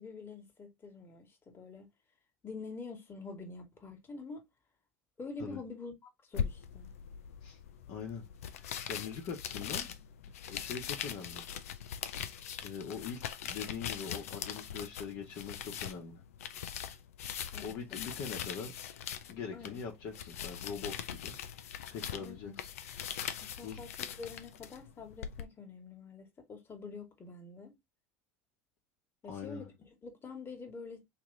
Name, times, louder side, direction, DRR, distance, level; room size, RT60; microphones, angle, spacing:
voice 1, 0.0-1.9 2.4-4.4 5.2-5.9 6.3-6.9 17.5-18.0 19.5-19.8 22.2-22.5 23.4-27.8 29.2-29.7 30.0-31.0, left 4 dB, 30° left, 1.5 m, -46 dB
sound 1, 6.3-25.4, left 9 dB, 80° left, 0.5 m, -41 dB
voice 2, 7.9-8.2 8.6-9.9 10.5-11.5 12.6-16.2 17.6-18.7 19.3-21.3 21.9-22.7 23.6-23.8 29.3-29.7, left 6 dB, 55° left, 1.1 m, -42 dB
3.0 x 2.9 x 3.7 m
hypercardioid pair, 80°, 8 cm